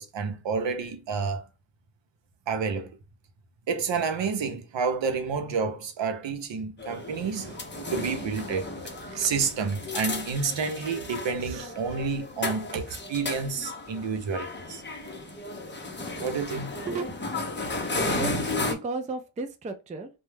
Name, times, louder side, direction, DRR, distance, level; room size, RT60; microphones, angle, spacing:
voice 1, 0.0-1.4 2.5-2.9 3.7-8.8 9.1-14.8 16.2-16.7, right 5 dB, 65° right, 0.6 m, -29 dB
sound 1, 6.8-18.7, left 2 dB, 25° left, 0.6 m, -34 dB
voice 2, 17.8-20.1, right 3 dB, 20° right, 0.3 m, -35 dB
2.2 x 2.0 x 3.1 m
wide cardioid pair, 75°, 48 cm